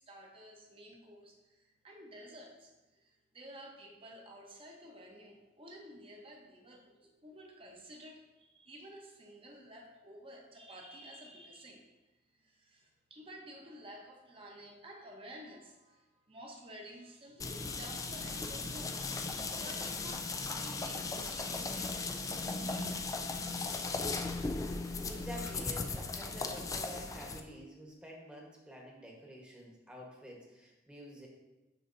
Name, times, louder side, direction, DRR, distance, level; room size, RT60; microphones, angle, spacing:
voice 1, 0.0-7.0 7.2-11.9 12.3-23.1, equal, 30° right, 1 dB, 1.0 m, -52 dB
sound 1, 17.4-27.4, left 3 dB, 20° left, 0.4 m, -37 dB
voice 2, 25.1-31.3, equal, 5° right, -2 dB, 1.1 m, -49 dB
11.0 x 4.0 x 2.6 m, 1.1 s
head